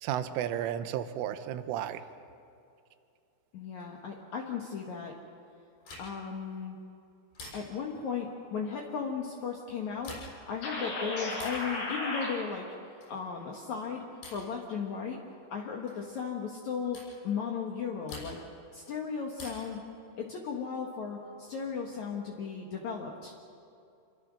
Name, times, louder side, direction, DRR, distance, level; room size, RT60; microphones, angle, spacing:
voice 1, 0.0-2.0, right 10 dB, 80° right, 10 dB, 3.5 m, -33 dB
voice 2, 3.5-5.2 6.0-6.8 7.5-12.7 13.1-15.2 15.5-18.4 18.7-19.8 20.2-23.3, left 6 dB, 70° left, 0 dB, 1.7 m, -36 dB
sound 1, 5.8-6.4 7.4-8.0 9.9-10.5 11.3-11.7 13.0-13.3 14.2-14.6 15.9-16.1 16.9-17.2 18.1-18.6 19.4-19.8 21.3-22.0, left 2 dB, 55° left, 8.4 m, -47 dB
sound 2, 10.6-12.3, left 2 dB, 90° left, 8.9 m, -34 dB
27.0 x 23.5 x 6.3 m, 2.5 s
omnidirectional pair, 5.7 m